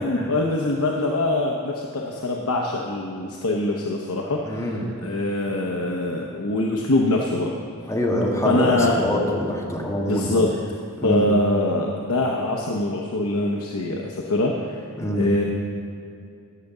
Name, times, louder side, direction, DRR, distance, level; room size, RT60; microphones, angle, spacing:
voice 1, 0.0-7.6 8.4-9.0 10.1-10.5 11.0-14.8 15.1-15.4, left 2 dB, 80° left, 0 dB, 0.9 m, -23 dB
voice 2, 4.4-4.9 7.9-10.3 11.0-11.3 15.0-15.3, left 1 dB, 15° left, -2 dB, 1.6 m, -25 dB
12.5 x 6.7 x 7.2 m, 2.4 s
head